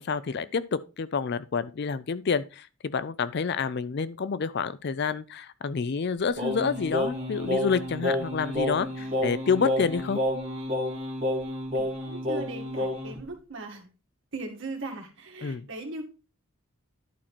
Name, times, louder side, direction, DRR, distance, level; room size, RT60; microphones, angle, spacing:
voice 1, 0.0-10.2 15.4-15.7, left 5 dB, 50° left, 0.4 m, -28 dB
Singing, 6.4-13.2, left 1 dB, 30° right, 2.3 m, -30 dB
voice 2, 11.7-13.9 14.3-16.0, right 2 dB, 55° right, 2.1 m, -39 dB
11.0 x 4.4 x 4.3 m
head